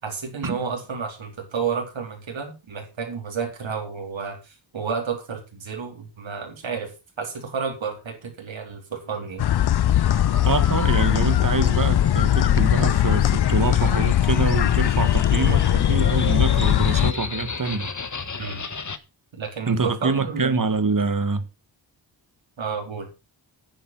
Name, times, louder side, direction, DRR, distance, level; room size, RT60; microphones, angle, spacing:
voice 1, 0.0-6.9 7.2-9.5 18.4-18.6 19.4-20.6 22.6-23.1, right 6 dB, 90° right, 4.1 m, -31 dB
sound 1, 9.4-17.1, left 11 dB, 60° left, 0.5 m, -20 dB
sound 2, 10.0-19.0, left 4 dB, 40° left, 1.6 m, -34 dB
voice 2, 10.5-17.9 19.7-21.5, right 4 dB, 45° right, 1.8 m, -25 dB
9.9 x 9.5 x 6.0 m
wide cardioid pair, 85°, 45 cm